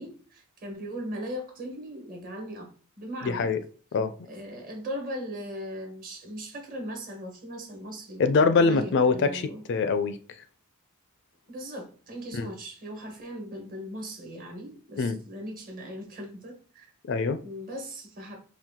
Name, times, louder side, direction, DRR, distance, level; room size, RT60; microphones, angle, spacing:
voice 1, 0.0-2.7 3.0-3.5 4.2-8.2 8.6-9.6 11.5-16.9 17.4-18.4, equal, 40° right, 1.2 m, -38 dB
voice 2, 3.2-3.6 3.9-4.1 8.2-10.2 12.3-12.5 15.0-15.2 17.1-17.4, left 4 dB, 55° left, 0.4 m, -23 dB
4.4 x 2.3 x 3.6 m
head